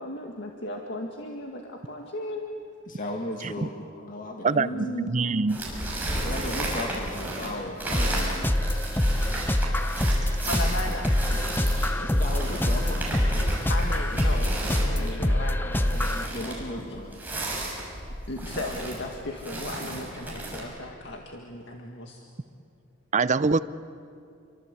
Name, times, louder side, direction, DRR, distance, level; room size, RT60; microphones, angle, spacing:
voice 1, 0.0-2.6 3.0-3.1 4.3-5.1 10.4-11.2 13.7-17.0 18.3-22.2, left 1 dB, 60° left, 1 dB, 2.0 m, -36 dB
voice 2, 2.9-4.7 5.2-5.3 6.2-8.5 12.0-13.7 14.9-15.4 16.3-17.2, left 1 dB, 40° left, 2 dB, 2.1 m, -36 dB
voice 3, 4.4-5.6 23.1-23.6, right 4 dB, 35° right, 15 dB, 0.6 m, -24 dB
sound 1, 5.5-20.6, right 1 dB, 10° right, 6.6 m, -33 dB
sound 2, 7.9-16.3, left 1 dB, 10° left, 0.7 m, -25 dB
28.5 x 24.0 x 8.4 m, 2.5 s
head